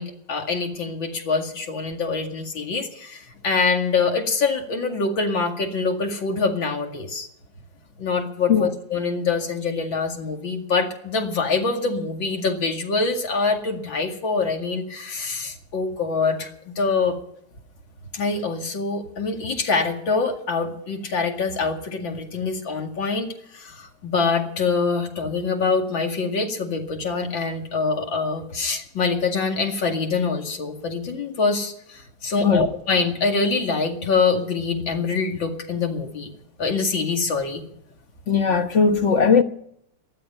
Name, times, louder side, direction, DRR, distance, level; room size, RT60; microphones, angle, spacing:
voice 1, 0.0-7.3 8.0-17.2 18.1-36.3 36.6-37.6, left 4 dB, 90° left, 3.1 m, -25 dB
voice 2, 38.3-39.4, left 5 dB, 45° left, 1.3 m, -18 dB
19.0 x 12.5 x 5.7 m
omnidirectional pair, 2.0 m